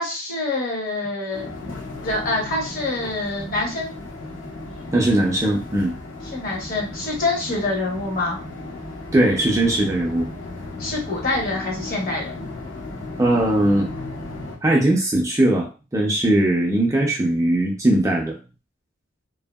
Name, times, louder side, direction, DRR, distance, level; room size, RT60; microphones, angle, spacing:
voice 1, 0.0-1.5 2.0-4.0 6.3-8.4 10.8-12.5, left 2 dB, 45° left, -1 dB, 0.9 m, -26 dB
sound 1, 1.3-14.6, left 2 dB, 75° left, 0.9 m, -35 dB
voice 2, 4.9-5.9 9.1-10.3 13.2-13.9 14.6-18.3, right 1 dB, 15° right, -1 dB, 0.4 m, -19 dB
2.6 x 2.6 x 2.2 m, 0.33 s
head